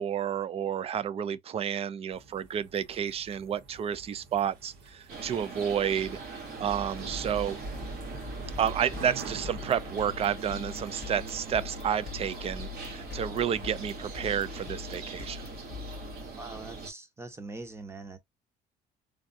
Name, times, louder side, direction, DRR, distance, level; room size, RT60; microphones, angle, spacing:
voice 1, 0.0-6.2 6.6-7.6 8.6-15.4, right 8 dB, 35° right, 0.4 m, -30 dB
sound 1, 2.1-16.3, right 1 dB, 80° right, 1.4 m, -46 dB
sound 2, 5.1-16.9, right 4 dB, 65° right, 1.5 m, -42 dB
sound 3, 8.4-16.6, left 12 dB, 70° left, 0.7 m, -44 dB
voice 2, 16.4-18.2, right 3 dB, 15° right, 0.8 m, -42 dB
3.4 x 2.3 x 2.6 m
cardioid pair, 110°, 17 cm